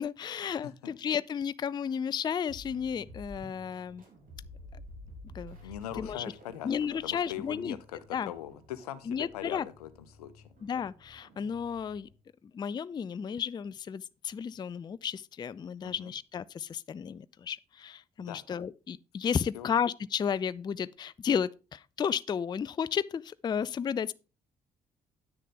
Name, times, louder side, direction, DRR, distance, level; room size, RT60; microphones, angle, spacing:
voice 1, 0.0-4.0 4.7-4.8 5.3-5.6 6.0-6.2 6.6-7.8 8.1-8.3 9.1-9.7 10.6-12.1 12.5-24.1, left 7 dB, 20° left, 0.4 m, -33 dB
sound 1, 2.5-12.2, left 1 dB, 45° right, 3.4 m, -51 dB
voice 2, 5.6-6.7 7.0-10.4 15.8-16.1 18.2-18.4 19.5-19.8, left 11 dB, 75° left, 0.7 m, -41 dB
9.8 x 8.0 x 3.7 m
figure-of-eight pair, 40°, 20 cm